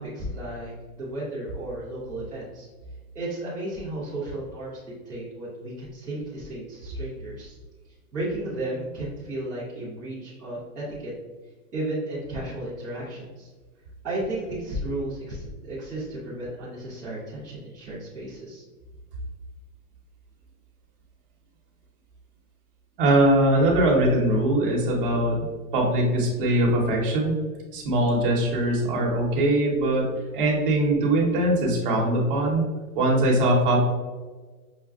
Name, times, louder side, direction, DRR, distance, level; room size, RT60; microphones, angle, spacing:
voice 1, 0.0-2.7 3.1-4.8 5.1-7.5 8.1-11.1 11.7-13.5 14.0-18.6, right 1 dB, 5° right, -10 dB, 0.5 m, -33 dB
voice 2, 23.0-25.4 25.7-27.3 27.7-32.6 32.9-33.8, right 1 dB, 35° right, -2 dB, 1.0 m, -21 dB
6.0 x 2.1 x 2.3 m, 1.3 s
hypercardioid pair, 160°, 44 cm